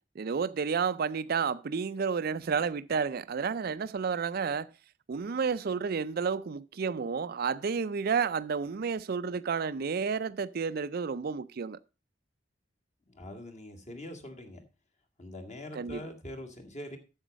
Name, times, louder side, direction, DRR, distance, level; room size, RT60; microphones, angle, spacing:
voice 1, 0.2-4.7 5.1-11.8 15.7-16.0, right 5 dB, 55° right, 0.4 m, -31 dB
voice 2, 13.1-14.6 15.2-17.0, left 1 dB, 40° left, 2.0 m, -43 dB
10.0 x 7.2 x 5.2 m
head